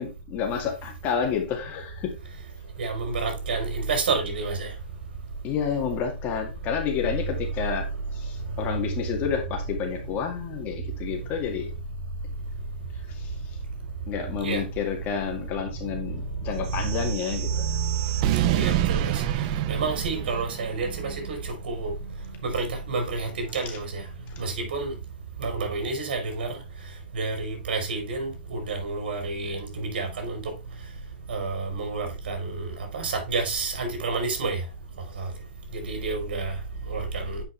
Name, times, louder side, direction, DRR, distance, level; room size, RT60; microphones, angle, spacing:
voice 1, 0.0-2.1 5.4-7.9 8.1-11.7 13.1-13.3 14.1-17.7, left 7 dB, 30° left, 2.2 m, -30 dB
voice 2, 2.8-4.7 14.4-14.6 17.0-17.1 17.5-17.9 18.5-19.2 19.7-21.9 22.4-24.0 24.4-24.9 25.4-26.6 27.1-30.4 31.3-32.7 32.9-34.6 35.2-35.3 35.7-36.5 36.9-37.4, right 4 dB, 70° right, 4.1 m, -29 dB
sound 1, 16.6-21.0, right 12 dB, 45° right, 0.7 m, -28 dB
9.2 x 5.2 x 3.4 m
hypercardioid pair, 130°, 5 cm